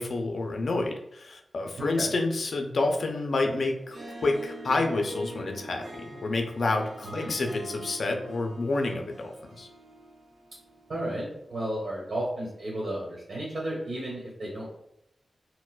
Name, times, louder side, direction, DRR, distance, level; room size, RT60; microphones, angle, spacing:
voice 1, 0.0-4.0 4.2-9.7, left 2 dB, 70° left, 3 dB, 0.4 m, -29 dB
voice 2, 1.8-2.1 7.0-7.3 10.9-14.7, right 1 dB, 70° right, -6 dB, 1.1 m, -33 dB
Harp, 3.8-11.2, right 1 dB, 85° right, 0.7 m, -44 dB
4.3 x 2.1 x 2.3 m, 0.80 s
cardioid pair, 65°, 0 cm